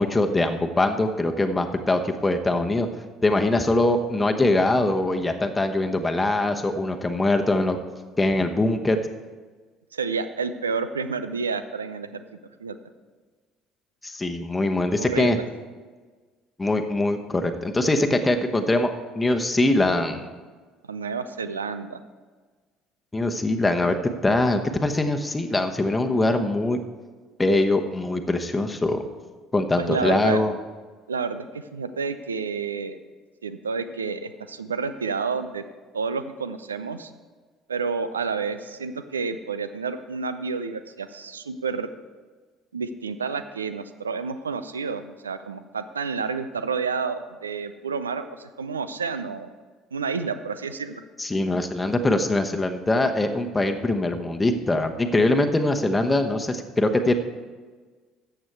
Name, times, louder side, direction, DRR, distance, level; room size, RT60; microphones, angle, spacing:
voice 1, 0.0-2.9 3.2-7.8 8.2-9.0 14.0-15.4 16.6-20.3 23.1-24.0 24.2-26.8 27.4-29.0 29.5-30.5 51.2-57.1, left 2 dB, 15° left, 5 dB, 1.0 m, -22 dB
voice 2, 9.9-12.2 12.6-12.8 15.0-15.4 20.9-22.0 29.8-30.4 31.1-33.0 33.4-35.6 35.9-37.1 37.7-41.9 42.7-49.5 49.9-51.0, right 5 dB, 85° right, 12 dB, 0.5 m, -30 dB
13.5 x 8.0 x 4.6 m, 1.4 s
figure-of-eight pair, 60°, 0 cm